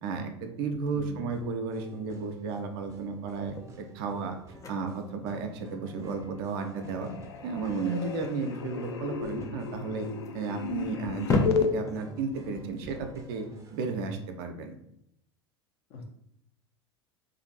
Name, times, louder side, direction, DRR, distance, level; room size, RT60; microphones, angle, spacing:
voice 1, 0.0-4.4 4.7-7.1 7.4-10.1 10.3-13.5 13.7-14.8, right 4 dB, 55° right, 5 dB, 0.5 m, -33 dB
sound 1, 0.7-13.9, left 3 dB, 20° left, 0.5 m, -37 dB
voice 2, 0.9-1.3 15.9-16.1, left 3 dB, 45° left, 0 dB, 0.9 m, -43 dB
sound 2, 1.3-13.9, right 2 dB, 20° right, 0.7 m, -52 dB
sound 3, 5.7-6.3 6.6-11.7, left 7 dB, 70° left, 0.4 m, -34 dB
2.6 x 2.5 x 4.0 m, 0.76 s
figure-of-eight pair, 80°, 14 cm